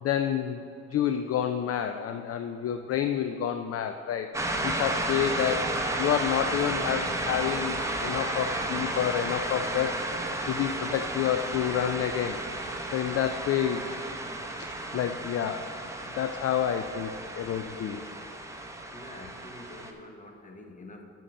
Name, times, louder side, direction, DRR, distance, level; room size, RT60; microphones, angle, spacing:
voice 1, 0.0-0.6 0.9-4.3 4.6-10.0 10.5-12.4 12.9-13.8 14.9-15.7 16.1-17.1 17.4-18.1, left 9 dB, 50° left, 7 dB, 0.4 m, -29 dB
sound 1, 4.3-19.9, right 1 dB, 10° right, 0.8 m, -33 dB
voice 2, 18.9-21.0, left 2 dB, 25° left, 4 dB, 1.1 m, -46 dB
7.1 x 5.7 x 6.3 m, 2.6 s
cardioid pair, 90°, 30 cm